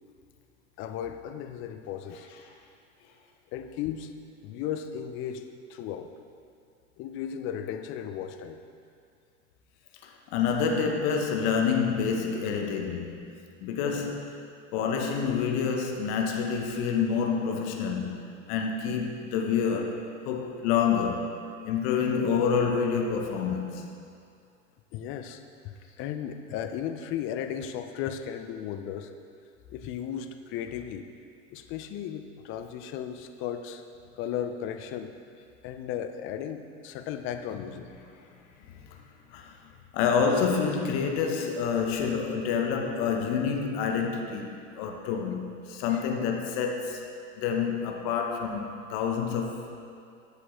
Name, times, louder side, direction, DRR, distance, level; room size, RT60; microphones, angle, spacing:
voice 1, 0.8-2.3 3.5-4.1 4.4-6.1 7.0-8.6 24.9-29.1 29.7-31.1 31.5-33.8 34.2-35.1 35.6-37.8 45.9-46.0, left 9 dB, 35° left, 8 dB, 0.4 m, -35 dB
voice 2, 2.1-2.4 10.0-13.3 13.6-14.4 14.7-18.2 18.5-21.4 21.6-23.8 37.5-37.6 38.7-39.0 39.3-39.5 39.9-47.0 47.4-49.8, left 6 dB, 55° left, 3 dB, 0.8 m, -28 dB
7.2 x 6.5 x 3.0 m, 2.5 s
hypercardioid pair, 100°, 38 cm